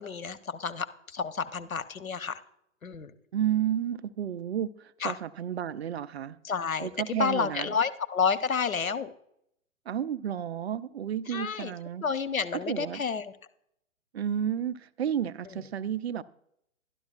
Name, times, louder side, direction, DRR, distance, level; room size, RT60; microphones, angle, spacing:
voice 1, 0.0-2.4 2.8-3.1 5.0-5.2 6.4-9.1 11.3-11.7 12.0-13.3 15.5-15.6, left 6 dB, 90° left, 11 dB, 0.8 m, -30 dB
voice 2, 3.3-6.4 6.8-7.7 9.9-12.0 12.7-13.0 14.1-16.2, right 9 dB, 50° right, 13 dB, 0.5 m, -31 dB
12.5 x 11.5 x 2.4 m, 0.73 s
figure-of-eight pair, 125°, 40 cm